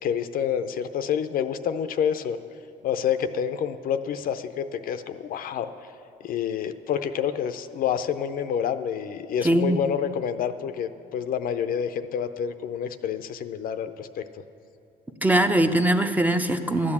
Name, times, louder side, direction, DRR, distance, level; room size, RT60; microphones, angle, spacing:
voice 1, 0.0-2.4 2.8-5.7 6.2-14.4, left 8 dB, 60° left, 10 dB, 0.6 m, -28 dB
voice 2, 9.4-9.8 15.2-16.9, right 1 dB, 10° right, 7 dB, 0.6 m, -21 dB
12.5 x 8.7 x 7.2 m, 2.6 s
cardioid pair, 110°, 17 cm